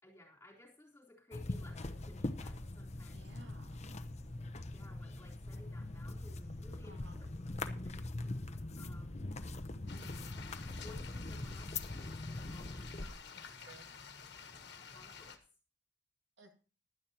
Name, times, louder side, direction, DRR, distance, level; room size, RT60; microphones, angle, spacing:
voice 1, 0.0-3.3 4.6-7.3 7.7-8.0 8.8-9.4 10.6-13.4 14.3-14.6 14.9-15.4, left 2 dB, 15° left, -1 dB, 3.8 m, -58 dB
sound 1, 1.3-13.1, left 2 dB, 35° left, 0.8 m, -42 dB
voice 2, 3.1-3.8 6.8-7.2 9.9-10.4 13.6-13.9 16.4-16.5, right 2 dB, 70° right, 5 dB, 2.1 m, -57 dB
sound 2, 9.9-15.4, left 6 dB, 65° left, 1.5 m, -51 dB
16.0 x 11.5 x 2.9 m, 0.36 s
head